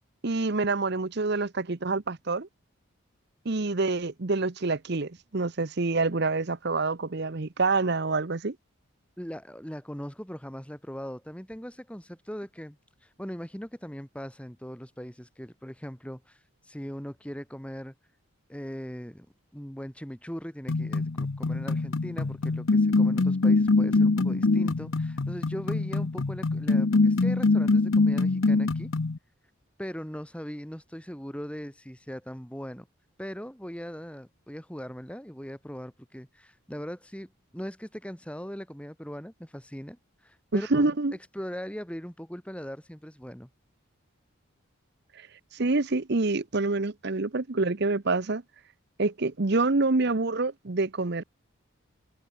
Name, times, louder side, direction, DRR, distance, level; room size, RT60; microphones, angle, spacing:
voice 1, 0.2-2.5 3.4-8.5 40.5-41.1 45.1-48.4 49.0-51.2, right 3 dB, 50° right, 0.9 m, -27 dB
voice 2, 9.2-17.9 18.5-19.3 19.5-28.9 29.8-32.9 33.2-40.9 41.3-43.5, equal, 5° left, 2.7 m, -40 dB
sound 1, 20.7-29.2, left 3 dB, 70° left, 0.8 m, -24 dB
open air
head